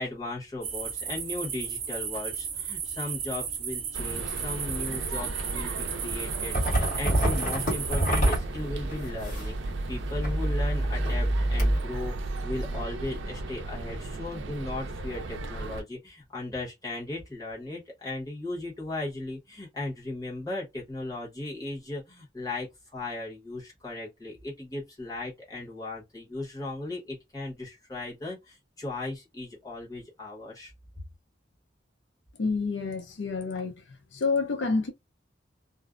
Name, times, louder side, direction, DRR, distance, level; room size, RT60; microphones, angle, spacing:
voice 1, 0.0-12.2 12.4-22.7 22.9-30.7, left 2 dB, 20° left, 1.0 m, -37 dB
sound 1, 0.6-8.4, right 7 dB, 35° right, 0.6 m, -34 dB
sound 2, 3.9-15.8, right 2 dB, 80° right, 0.4 m, -36 dB
sound 3, 6.5-9.6 10.0-11.8, right 1 dB, 45° left, 1.3 m, -26 dB
voice 2, 32.4-33.8 34.1-34.9, left 4 dB, 75° left, 0.5 m, -28 dB
2.5 x 2.0 x 2.4 m
head